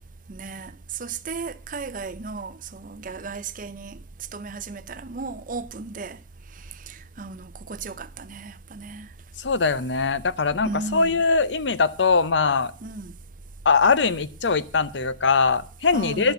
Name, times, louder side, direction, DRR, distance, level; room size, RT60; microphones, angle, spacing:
voice 1, 0.3-0.7 1.0-4.0 4.3-6.2 6.9-9.1 10.6-11.2 12.8-13.1 15.9-16.3, right 4 dB, 50° right, 0.7 m, -35 dB
voice 2, 9.4-12.7 13.7-16.3, left 4 dB, 85° left, 0.7 m, -21 dB
12.0 x 7.1 x 7.9 m
head